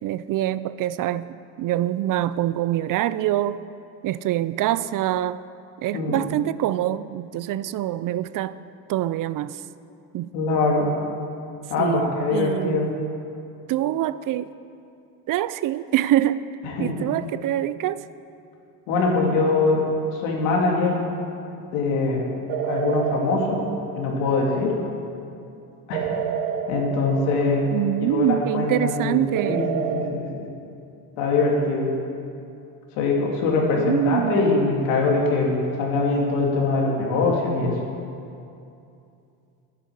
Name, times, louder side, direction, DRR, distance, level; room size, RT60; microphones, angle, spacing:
voice 1, 0.0-1.3 1.6-3.6 4.0-5.4 5.8-8.6 8.9-9.6 10.1-10.3 11.8-12.9 13.7-14.5 15.3-16.5 16.8-18.1 27.7-29.7 33.8-34.6, right 13 dB, 50° right, 16 dB, 0.5 m, -25 dB
voice 2, 10.3-10.9 11.7-12.9 16.6-17.0 18.9-19.8 20.1-21.0 21.7-22.3 22.6-23.6 23.9-24.8 25.9-26.1 26.7-27.7 28.1-29.2 29.5-30.4 31.2-31.9 32.9-37.8, left 3 dB, 85° left, -2 dB, 3.0 m, -22 dB
sound 1, 22.5-24.5 25.9-28.0 29.3-30.1, right 7 dB, 80° right, 1.3 m, -29 dB
10.5 x 9.6 x 8.6 m, 2.6 s
supercardioid pair, 100°, 44 cm